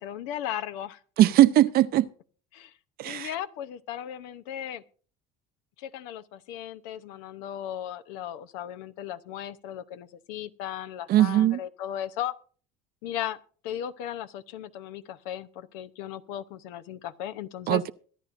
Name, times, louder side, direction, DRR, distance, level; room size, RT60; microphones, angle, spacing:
voice 1, 0.0-1.0 2.5-2.7 3.0-4.8 5.8-12.3 13.0-13.4 13.6-17.8, left 11 dB, 75° left, 0.8 m, -36 dB
voice 2, 1.2-2.1 3.0-3.3 11.1-11.6 17.7-17.9, right 13 dB, 50° right, 0.6 m, -20 dB
23.0 x 10.0 x 2.6 m
supercardioid pair, 85°, 19 cm